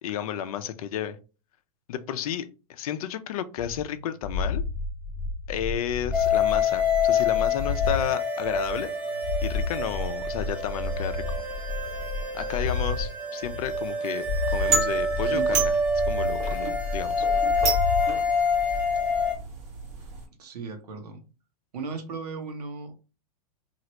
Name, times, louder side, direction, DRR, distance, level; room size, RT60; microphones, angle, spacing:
voice 1, 0.0-1.2 1.9-4.6 5.5-8.9 9.4-11.4 12.3-14.3 14.5-15.7 16.1-17.3, left 9 dB, 65° left, 0.5 m, -32 dB
sound 1, 3.6-8.1 8.4-13.1 13.4-14.0 14.2-18.1, left 3 dB, 30° left, 0.9 m, -32 dB
sound 2, 6.1-19.4, left 3 dB, 5° right, 0.5 m, -27 dB
sound 3, 14.5-20.3, right 3 dB, 35° right, 1.0 m, -32 dB
voice 2, 15.2-15.6 20.4-21.2 21.7-23.0, right 4 dB, 80° right, 0.9 m, -36 dB
3.0 x 2.5 x 2.9 m
hypercardioid pair, 120°, 20 cm